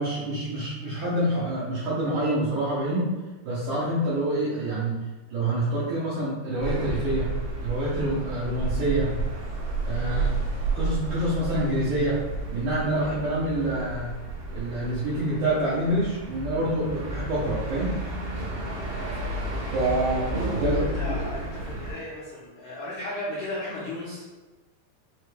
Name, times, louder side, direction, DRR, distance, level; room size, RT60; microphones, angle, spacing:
voice 1, 0.0-3.1 3.4-5.0 5.3-7.3 7.6-9.1 9.8-10.5 10.7-12.2 12.5-14.1 14.5-18.0 19.7-21.1, right 1 dB, 85° right, -9 dB, 1.6 m, -27 dB
sound 1, 6.6-21.9, right 2 dB, 65° right, 1.4 m, -31 dB
voice 2, 10.0-10.3 18.9-19.4 20.6-24.3, left 1 dB, 75° left, -10 dB, 1.8 m, -36 dB
5.8 x 3.1 x 2.2 m, 1.2 s
omnidirectional pair, 4.6 m